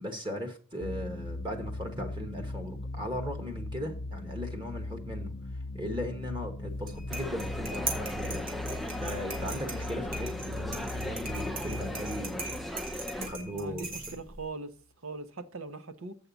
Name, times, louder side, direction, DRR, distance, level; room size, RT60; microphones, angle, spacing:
voice 1, 0.0-5.3 5.7-8.4 8.9-12.6 13.2-14.2, equal, 25° right, 1.1 m, -38 dB
sound 1, 0.8-14.1, left 2 dB, 75° left, 0.7 m, -39 dB
sound 2, 6.7-14.4, right 3 dB, 45° right, 2.2 m, -40 dB
sound 3, 7.1-13.3, left 1 dB, ahead, 0.4 m, -38 dB
voice 2, 13.5-14.7 15.0-16.2, right 3 dB, 85° right, 1.0 m, -40 dB
7.7 x 5.6 x 6.9 m
head